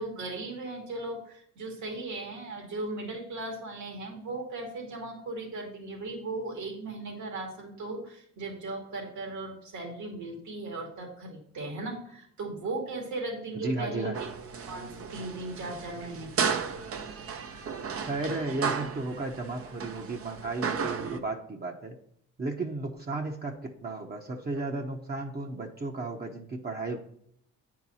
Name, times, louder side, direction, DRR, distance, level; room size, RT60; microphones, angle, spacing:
voice 1, 0.0-14.3 14.7-16.4 24.5-24.6, right 2 dB, 70° right, 1 dB, 2.6 m, -37 dB
voice 2, 13.6-14.2 18.0-22.0 22.4-27.1, right 3 dB, 30° right, 1 dB, 1.1 m, -34 dB
sound 1, 14.1-21.2, right 6 dB, 50° right, 0.8 m, -34 dB
8.9 x 4.7 x 5.6 m, 0.68 s
cardioid pair, 90°, 30 cm